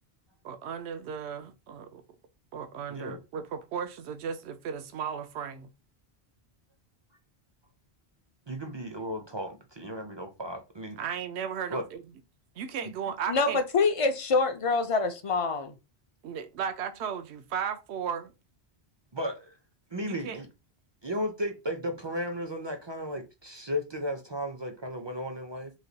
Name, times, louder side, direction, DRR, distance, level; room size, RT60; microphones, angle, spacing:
voice 1, 0.4-2.0 2.5-5.7 11.0-12.0 12.6-13.6 16.2-18.3 20.0-20.4, right 7 dB, 85° right, 0.8 m, -35 dB
voice 2, 2.9-3.2 8.5-11.0 11.7-11.8 12.8-12.9 19.1-19.5 19.9-20.5 21.0-25.7, equal, 40° right, 0.4 m, -35 dB
voice 3, 13.3-15.7, left 4 dB, 45° left, 0.4 m, -25 dB
3.1 x 2.2 x 3.9 m
omnidirectional pair, 1.1 m